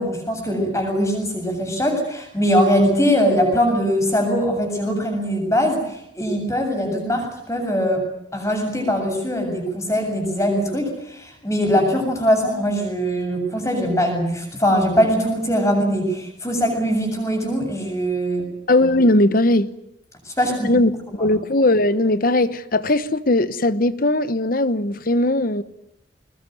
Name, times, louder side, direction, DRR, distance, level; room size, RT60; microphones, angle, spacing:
voice 1, 0.0-8.0 8.3-18.5 20.3-20.7 21.2-21.3, equal, 15° left, 7.4 m, -21 dB
voice 2, 18.7-19.7 20.6-20.9 21.2-25.6, left 1 dB, 50° left, 1.1 m, -18 dB
23.0 x 20.5 x 9.4 m
head